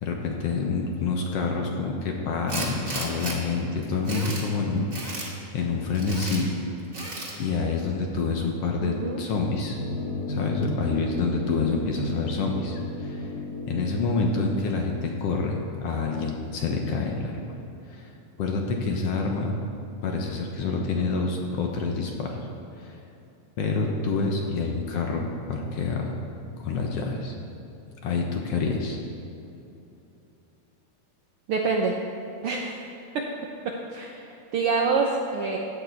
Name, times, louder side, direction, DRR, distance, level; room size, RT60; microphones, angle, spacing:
voice 1, 0.0-6.5 7.4-9.8 10.3-13.3 13.7-17.4 17.9-18.1 18.4-19.5 20.0-22.4 22.8-23.0 23.6-26.2 26.6-27.3 28.0-29.0, left 4 dB, 65° left, 1 dB, 1.8 m, -27 dB
Tools, 2.5-3.4 3.8-4.5 4.9-5.3 5.9-6.4 6.9-7.4, right 2 dB, 35° right, 2.4 m, -34 dB
voice 2, 8.8-9.2 31.5-31.9 32.4-32.7 33.1-33.3 33.9-35.6, right 4 dB, 70° right, 0 dB, 1.4 m, -26 dB
sound 1, 9.7-15.0, left 2 dB, 85° left, 3.9 m, -34 dB
15.0 x 9.6 x 4.6 m, 2.8 s
omnidirectional pair, 3.4 m